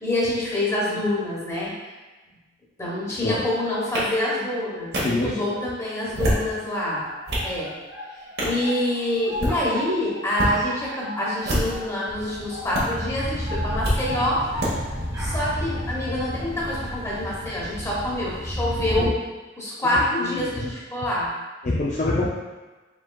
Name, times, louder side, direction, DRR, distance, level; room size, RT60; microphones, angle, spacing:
voice 1, 0.0-1.7 2.8-7.0 7.4-7.7 8.4-14.4 15.2-19.1 19.6-21.3, left 1 dB, 15° left, -6 dB, 1.0 m, -26 dB
sound 1, 3.9-4.0 4.9-5.0 6.0-6.5 7.0-7.5 8.4-8.6 9.2-9.6 10.3-10.5 11.4-11.9 12.7-12.8 13.8-14.0 14.6-14.7, equal, 60° right, 1.2 m, -25 dB
voice 2, 5.0-5.6 7.4-7.5 19.8-20.7 21.6-22.3, left 2 dB, 40° left, -5 dB, 0.4 m, -26 dB
sound 2, 6.9-16.5, equal, 15° right, 0.8 m, -37 dB
sound 3, 12.1-19.1, equal, 30° right, 1.2 m, -31 dB
4.6 x 3.6 x 2.3 m, 1.2 s
head